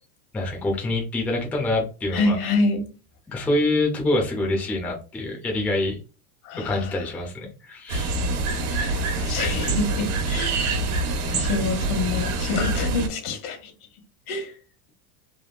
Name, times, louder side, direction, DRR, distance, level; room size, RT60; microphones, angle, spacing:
voice 1, 0.3-2.4 3.3-6.0 6.6-8.1, left 2 dB, 5° left, 0.3 m, -25 dB
voice 2, 2.1-2.8 6.4-7.0 8.7-10.8 11.3-13.7 14.3-14.5, left 3 dB, 80° left, 1.2 m, -27 dB
sound 1, 7.9-13.1, right 2 dB, 80° right, 1.2 m, -25 dB
3.4 x 2.3 x 2.3 m
supercardioid pair, 135°, 43 cm